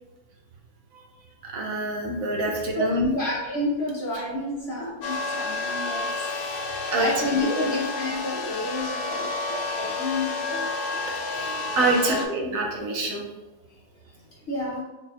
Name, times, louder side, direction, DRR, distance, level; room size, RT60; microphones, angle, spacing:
voice 1, 1.4-3.1 4.1-4.2 6.9-7.1 7.4-7.6 11.1-13.2, right 2 dB, 70° right, 0 dB, 1.0 m, -26 dB
voice 2, 3.1-6.6 6.9-11.0 11.8-12.2 14.5-14.8, left 2 dB, 55° left, -5 dB, 0.7 m, -30 dB
sound 1, 5.0-12.3, left 3 dB, 80° left, 1.1 m, -30 dB
3.9 x 2.8 x 2.4 m, 1.1 s
omnidirectional pair, 1.6 m